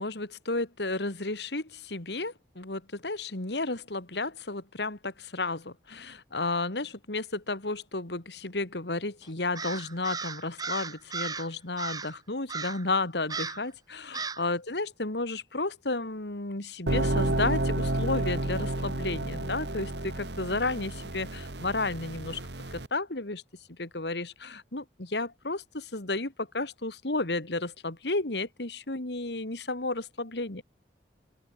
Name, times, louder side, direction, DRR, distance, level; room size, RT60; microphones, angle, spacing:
voice 1, 0.0-23.4 23.7-30.6, left 2 dB, 75° left, 2.4 m, -32 dB
Crow, 9.5-11.5 11.8-12.2 12.5-12.9 13.3-13.7 14.1-14.5, right 5 dB, 20° right, 3.8 m, -36 dB
sound 1, 16.9-22.9, right 1 dB, 80° right, 2.4 m, -31 dB
open air
head